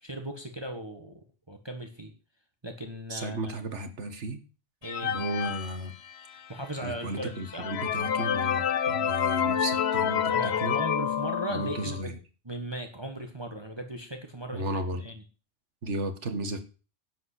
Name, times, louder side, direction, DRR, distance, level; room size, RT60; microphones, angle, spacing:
voice 1, 0.0-2.1 2.6-3.5 4.8-5.1 6.3-7.6 8.2-8.5 10.3-12.1 12.4-15.2, right 1 dB, 20° right, 5 dB, 1.6 m, -38 dB
voice 2, 3.1-4.4 5.0-5.9 6.8-10.8 11.5-12.2 14.5-15.0 15.8-16.6, right 1 dB, 70° right, 8 dB, 2.0 m, -34 dB
sound 1, 4.8-6.5 7.0-7.1 7.5-12.0, left 8 dB, 60° left, 1.1 m, -28 dB
11.5 x 5.4 x 8.3 m, 0.34 s
omnidirectional pair, 1.3 m